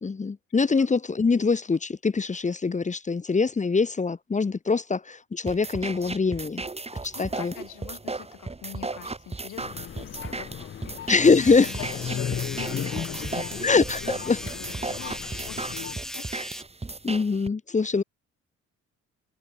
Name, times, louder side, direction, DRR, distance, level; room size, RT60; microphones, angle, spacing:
voice 1, 0.0-6.6 7.0-7.5 11.1-11.7 13.6-14.0 14.3-14.4 17.0-18.0, left 4 dB, 25° left, 1.1 m, -23 dB
sound 1, 5.5-17.5, right 3 dB, 20° right, 5.7 m, -36 dB
voice 2, 7.1-13.8 14.0-16.3, left 15 dB, 85° left, 4.2 m, -43 dB
sound 2, 9.6-15.9, left 9 dB, 40° left, 0.7 m, -36 dB
sound 3, 11.2-16.6, equal, ahead, 0.9 m, -38 dB
cardioid pair, 90°, 30 cm